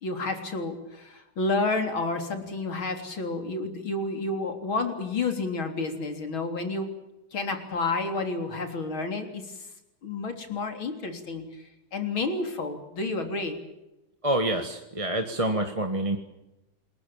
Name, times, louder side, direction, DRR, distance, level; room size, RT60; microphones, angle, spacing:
voice 1, 0.0-6.9 7.3-9.7 10.0-13.6, left 3 dB, 65° left, 5 dB, 4.4 m, -30 dB
voice 2, 14.2-16.2, right 1 dB, 15° right, 4 dB, 1.7 m, -27 dB
28.5 x 21.5 x 7.3 m, 0.95 s
omnidirectional pair, 2.4 m